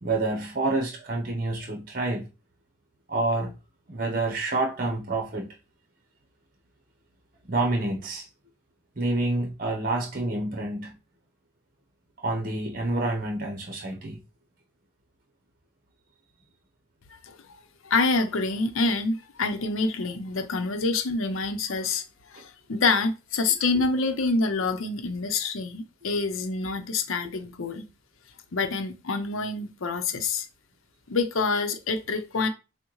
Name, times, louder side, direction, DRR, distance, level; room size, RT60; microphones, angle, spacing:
voice 1, 0.0-2.3 3.1-3.5 3.9-5.5 7.4-8.3 9.0-11.0 12.2-14.2 23.7-23.8, right 2 dB, 45° right, 0.8 m, -28 dB
voice 2, 17.8-22.0 22.3-27.9 28.5-30.5 31.1-32.5, left 3 dB, 90° left, 0.7 m, -26 dB
6.1 x 2.2 x 3.1 m
head